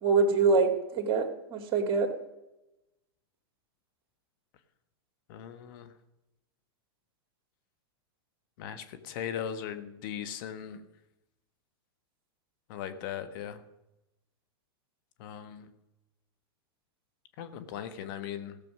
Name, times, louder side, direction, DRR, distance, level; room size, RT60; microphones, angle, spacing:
voice 1, 0.0-2.1, right 4 dB, 40° right, 5 dB, 2.2 m, -25 dB
voice 2, 5.3-5.9 8.6-10.8 12.7-13.6 15.2-15.7 17.4-18.6, left 9 dB, 60° left, 10 dB, 1.3 m, -38 dB
16.5 x 6.9 x 6.1 m, 0.95 s
hypercardioid pair, 110°, 13 cm